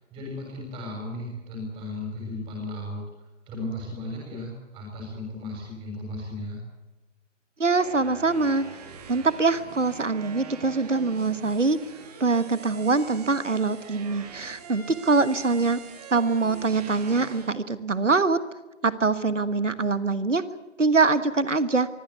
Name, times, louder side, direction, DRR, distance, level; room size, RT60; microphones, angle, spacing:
voice 1, 0.0-3.0 3.5-6.6, left 1 dB, 15° right, -1 dB, 6.5 m, -35 dB
sound 1, 7.6-17.5, right 5 dB, 30° right, 3.1 m, -43 dB
voice 2, 7.6-8.6 9.1-11.8 12.2-15.8 16.1-18.4 18.8-20.4 20.8-21.9, right 3 dB, 75° right, 14 dB, 1.5 m, -23 dB
24.0 x 15.5 x 9.3 m, 1.1 s
figure-of-eight pair, 140°, 37 cm